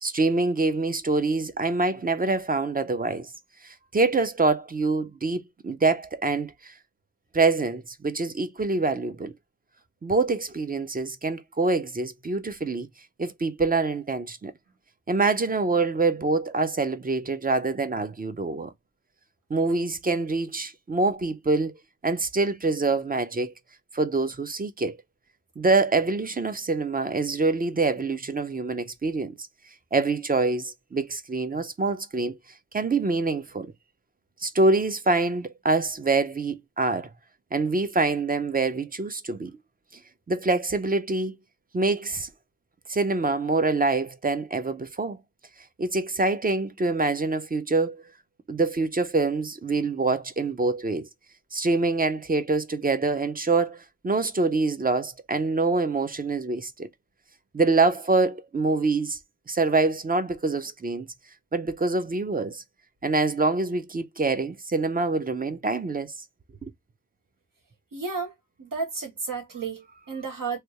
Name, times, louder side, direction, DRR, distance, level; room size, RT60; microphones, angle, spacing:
voice 1, 0.0-3.3 3.6-6.7 7.3-9.3 10.0-12.9 13.2-14.5 15.1-18.7 19.5-21.7 22.0-23.5 23.9-25.0 25.6-29.4 29.9-32.4 32.7-33.7 34.4-37.1 37.5-39.6 40.3-41.4 41.7-42.3 42.9-45.2 45.8-48.0 48.5-51.1 51.5-56.9 57.5-59.2 59.5-61.1 61.5-62.6 63.0-66.1 66.6-66.7, right 3 dB, 25° right, 0.5 m, -25 dB
voice 2, 67.9-68.3 68.6-70.6, right 4 dB, 80° right, 1.5 m, -32 dB
3.3 x 2.7 x 2.9 m
wide cardioid pair, 115°, 33 cm